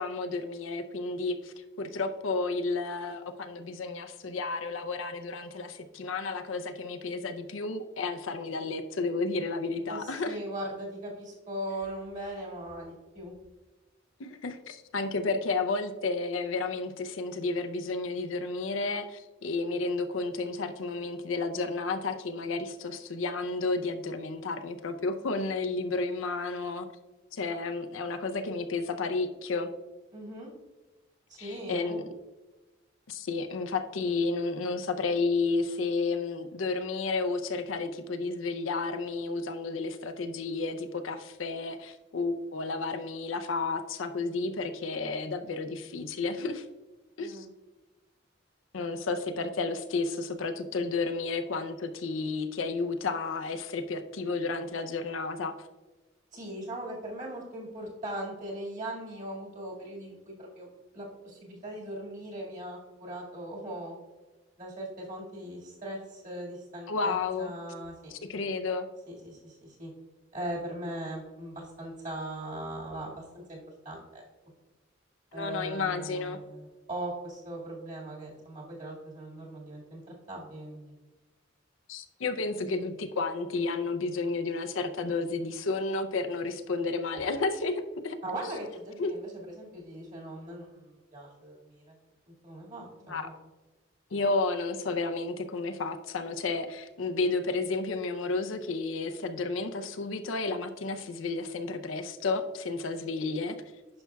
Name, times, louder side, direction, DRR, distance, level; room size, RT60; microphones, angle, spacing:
voice 1, 0.0-10.4 14.2-26.9 27.3-29.7 31.4-32.0 33.1-46.7 47.2-47.5 48.7-55.5 66.9-67.5 68.1-68.9 75.3-76.4 81.9-88.2 89.0-89.1 93.1-93.3 94.1-103.6, left 3 dB, 85° left, 7 dB, 0.6 m, -32 dB
voice 2, 9.9-13.3 30.1-30.5 31.3-32.0 47.2-47.5 56.3-63.9 64.6-68.1 69.1-69.9 70.3-73.6 73.8-74.2 75.3-81.0 88.2-92.0 92.3-93.3, right 1 dB, 40° right, -3 dB, 2.0 m, -39 dB
10.5 x 5.8 x 2.3 m, 1.2 s
head